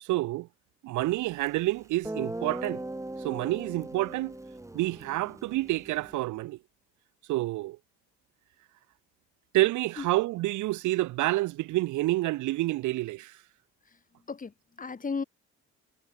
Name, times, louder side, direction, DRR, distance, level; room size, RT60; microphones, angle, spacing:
voice 1, 0.0-0.5 0.8-2.8 3.2-4.3 4.7-6.6 7.3-7.8 9.5-13.4, right 18 dB, 75° right, 0.5 m, -28 dB
Guitar, 1.5-1.6 2.0-6.2, right 1 dB, 10° right, 2.7 m, -39 dB
voice 2, 13.8-15.2, left 4 dB, 25° left, 2.1 m, -36 dB
cardioid pair, 90°, 30 cm